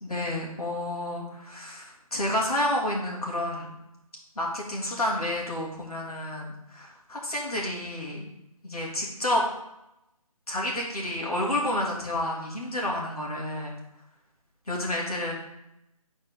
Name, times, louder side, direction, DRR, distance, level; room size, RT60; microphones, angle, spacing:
voice 1, 0.0-3.7 4.4-8.2 8.6-9.4 10.5-13.7 14.7-15.3, left 1 dB, 80° left, -2 dB, 2.3 m, -30 dB
9.6 x 4.3 x 3.6 m, 0.87 s
figure-of-eight pair, 155°, 19 cm